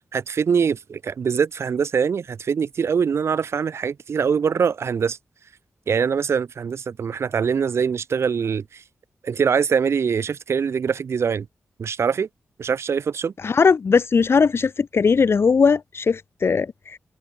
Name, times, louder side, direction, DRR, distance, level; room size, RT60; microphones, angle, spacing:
voice 1, 0.0-5.2 5.9-8.8 9.2-11.5 11.8-12.3 12.6-13.3, right 6 dB, 70° right, 3.7 m, -23 dB
voice 2, 13.4-17.0, left 5 dB, 60° left, 2.8 m, -19 dB
supercardioid pair, 40°, 5 cm